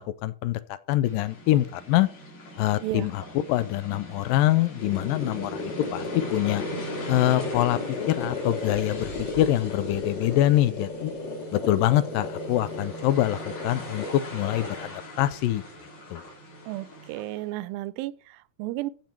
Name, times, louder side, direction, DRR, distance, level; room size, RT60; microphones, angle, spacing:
voice 1, 0.0-2.1 2.6-6.0 6.3-6.6 7.1-7.8 8.1-11.1 11.5-15.6 16.1-16.2, left 14 dB, 80° left, 2.2 m, -25 dB
sound 1, 1.0-17.5, right 1 dB, 60° left, 5.2 m, -41 dB
sound 2, 4.8-14.8, left 3 dB, 40° left, 2.4 m, -34 dB
voice 2, 16.7-18.9, right 16 dB, 90° right, 2.4 m, -33 dB
14.5 x 5.2 x 4.4 m
omnidirectional pair, 4.1 m